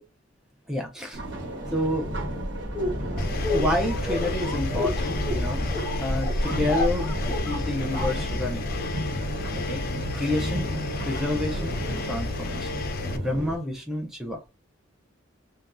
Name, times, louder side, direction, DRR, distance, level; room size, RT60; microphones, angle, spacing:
voice 1, 0.7-1.2 1.7-2.1 3.5-5.7 6.0-8.7 9.5-10.7 11.0-12.8 13.1-14.4, left 1 dB, ahead, 0.5 m, -29 dB
sound 1, 1.1-13.6, right 1 dB, 65° right, 1.1 m, -34 dB
sound 2, 2.6-8.8, left 1 dB, 15° left, 1.1 m, -30 dB
Engine, 3.2-13.2, left 3 dB, 50° left, 0.5 m, -32 dB
3.3 x 2.2 x 2.5 m
head